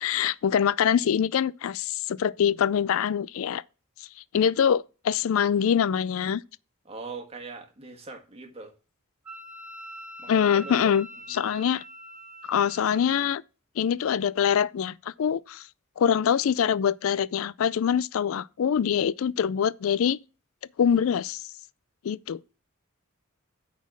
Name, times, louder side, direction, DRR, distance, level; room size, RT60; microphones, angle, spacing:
voice 1, 0.0-3.6 4.0-4.1 4.3-6.4 10.3-11.8 12.5-13.4 13.8-15.7 16.0-20.2 20.8-21.4 22.0-22.4, left 8 dB, 65° left, 0.4 m, -24 dB
voice 2, 6.8-8.7 10.2-10.8 11.3-11.5, right 3 dB, 30° right, 1.5 m, -41 dB
Wind instrument woodwind instrument, 9.3-13.0, right 1 dB, 5° right, 1.9 m, -43 dB
9.3 x 4.2 x 6.1 m
head